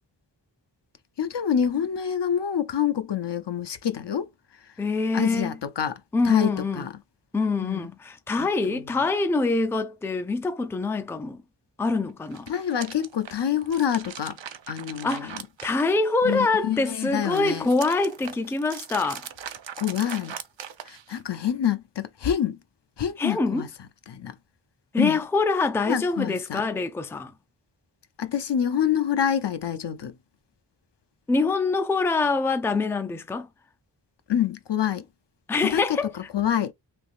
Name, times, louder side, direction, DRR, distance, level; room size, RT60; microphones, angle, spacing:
voice 1, 1.2-4.3 5.1-5.9 6.3-6.9 7.6-7.9 8.4-8.8 12.5-14.4 14.7-15.3 16.2-17.7 19.8-20.4 20.9-22.6 23.0-23.7 24.1-24.3 25.0-25.2 25.9-26.6 28.2-30.1 34.3-35.0 35.6-36.0 36.3-36.7, left 9 dB, 70° left, 0.6 m, -26 dB
voice 2, 4.8-5.6 6.1-6.9 7.3-11.4 11.8-12.5 15.0-19.3 23.2-23.7 24.9-27.3 31.3-33.5 35.5-36.3, left 3 dB, 5° left, 0.4 m, -25 dB
sound 1, 12.2-16.4 16.7-21.4, right 8 dB, 85° right, 0.6 m, -40 dB
3.4 x 2.9 x 2.5 m
wide cardioid pair, 80°, 44 cm